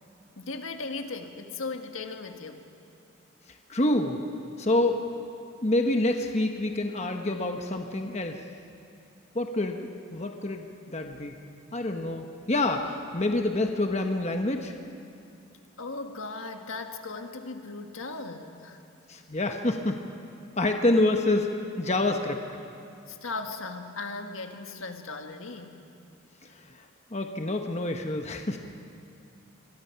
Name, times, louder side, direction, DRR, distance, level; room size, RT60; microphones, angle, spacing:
voice 1, 0.4-2.6 15.8-18.8 23.1-25.8, left 3 dB, 75° left, 5 dB, 1.6 m, -37 dB
voice 2, 3.5-4.2 4.6-5.0 5.6-8.4 9.3-9.8 10.1-11.4 11.7-14.7 19.1-20.0 20.6-22.4 26.4-28.6, left 2 dB, 30° left, 4 dB, 1.1 m, -27 dB
27.0 x 21.5 x 5.8 m, 2.5 s
head